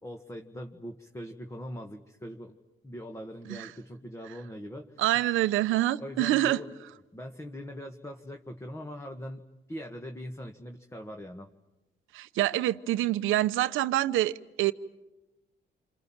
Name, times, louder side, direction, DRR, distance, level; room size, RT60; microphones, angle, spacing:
voice 1, 0.0-2.6 2.8-5.0 6.0-6.7 7.1-11.5, equal, 15° left, 1.8 m, -41 dB
voice 2, 5.0-6.6 12.1-14.7, right 15 dB, 90° right, 0.9 m, -26 dB
28.5 x 26.0 x 7.5 m
cardioid pair, 90°, 20 cm